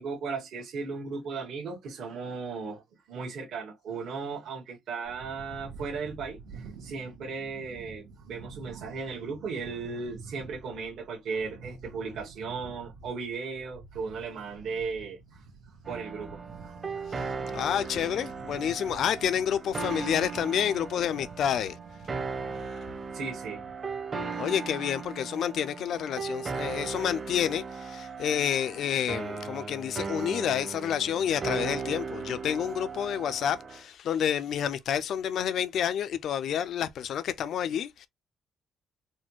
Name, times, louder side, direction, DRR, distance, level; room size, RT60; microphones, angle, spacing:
voice 1, 0.0-2.8 3.1-15.5 15.9-17.7 23.1-24.1, right 4 dB, 60° right, 0.9 m, -37 dB
sound 1, 5.0-23.7, right 4 dB, 85° right, 1.0 m, -49 dB
sound 2, 15.8-33.8, right 4 dB, 25° right, 0.7 m, -37 dB
voice 2, 17.5-21.8 24.4-38.1, left 9 dB, 55° left, 0.3 m, -29 dB
4.1 x 2.2 x 3.0 m
cardioid pair, 155°, 0 cm